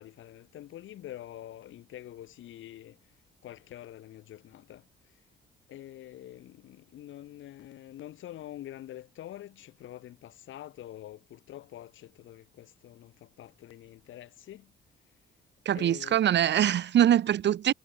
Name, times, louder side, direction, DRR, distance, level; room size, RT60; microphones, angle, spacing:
voice 1, 0.0-3.0 3.4-4.9 5.7-14.7 15.7-16.2 16.4-16.6, left 13 dB, 80° left, 2.6 m, -46 dB
voice 2, 15.6-17.7, right 11 dB, 60° right, 1.2 m, -23 dB
cardioid pair, 90°, 20 cm